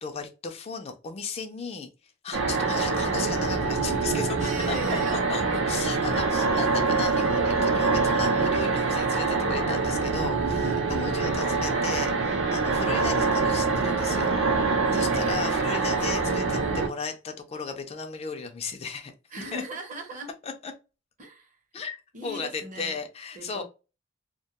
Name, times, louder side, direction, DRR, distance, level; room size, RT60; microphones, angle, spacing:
voice 1, 0.0-5.0 5.3-14.4 14.9-19.1 19.5-19.6 20.4-20.7 21.7-22.0 22.2-23.6, left 5 dB, 30° left, 0.3 m, -35 dB
sound 1, 2.3-16.9, right 4 dB, 80° right, 0.6 m, -25 dB
voice 2, 4.4-5.2 10.5-10.9 14.8-16.7 19.3-20.3 21.2-21.6 22.1-23.0 23.3-23.6, right 2 dB, 40° right, 0.8 m, -39 dB
2.2 x 2.2 x 2.8 m
head